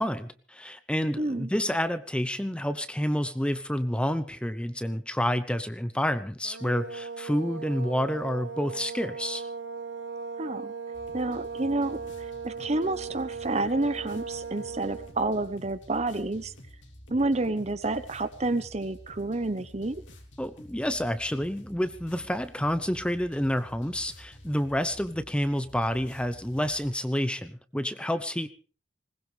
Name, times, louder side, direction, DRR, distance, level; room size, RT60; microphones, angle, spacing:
voice 1, 0.0-9.5 20.4-28.5, equal, 5° left, 11 dB, 0.8 m, -29 dB
voice 2, 1.2-1.5 10.4-10.7 11.1-16.5 17.1-20.0, right 2 dB, 35° right, 12 dB, 1.0 m, -29 dB
sound 1, 6.4-15.2, right 5 dB, 85° right, 1.3 m, -38 dB
sound 2, 10.9-26.9, equal, 80° left, 3.2 m, -50 dB
20.5 x 19.5 x 3.4 m, 0.38 s
head